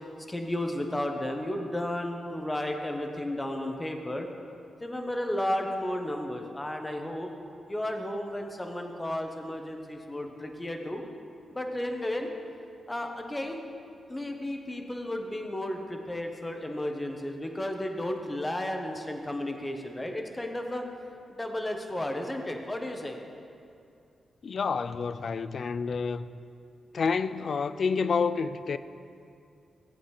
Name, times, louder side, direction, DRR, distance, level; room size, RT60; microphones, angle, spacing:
voice 1, 0.3-4.3 4.8-7.3 7.7-11.0 11.5-12.3 12.9-13.6 14.1-20.8 21.3-23.2, left 1 dB, 20° left, 1.1 m, -33 dB
voice 2, 24.4-26.3 26.9-28.8, left 5 dB, 60° left, 0.3 m, -29 dB
14.0 x 7.9 x 3.2 m
cardioid pair, 60°, 0 cm